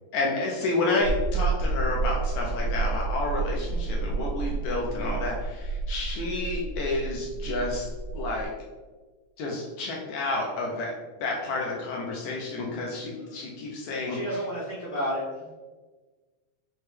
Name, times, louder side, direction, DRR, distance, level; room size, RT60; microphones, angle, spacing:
voice 1, 0.1-7.9 8.1-8.5 9.4-10.9 11.2-14.2, left 2 dB, 80° left, -2 dB, 1.7 m, -30 dB
sound 1, 1.0-8.5, right 3 dB, 65° right, 1.0 m, -30 dB
voice 2, 6.2-6.6 11.4-11.7 13.1-13.4 14.1-15.5, equal, 55° left, -10 dB, 1.3 m, -33 dB
5.9 x 2.1 x 3.2 m, 1.3 s
omnidirectional pair, 3.7 m